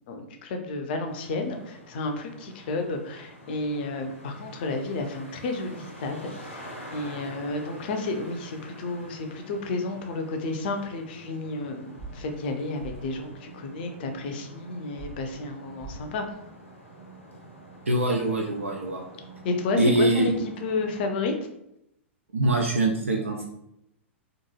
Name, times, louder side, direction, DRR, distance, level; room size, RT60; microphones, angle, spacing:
voice 1, 0.1-16.2 19.4-20.3 20.6-21.3, left 3 dB, 50° left, 5 dB, 0.5 m, -31 dB
Traffic noise roadway noise, 1.1-21.0, right 1 dB, 90° left, 0.7 m, -47 dB
sound 1, 12.0-12.1 12.8-12.9 15.0-15.1 15.8-16.0, right 4 dB, 35° right, 0.6 m, -39 dB
voice 2, 17.9-19.0 19.8-20.3 22.3-23.5, right 2 dB, 80° right, 0 dB, 0.4 m, -23 dB
2.8 x 2.5 x 2.2 m, 0.79 s
figure-of-eight pair, 100°, 7 cm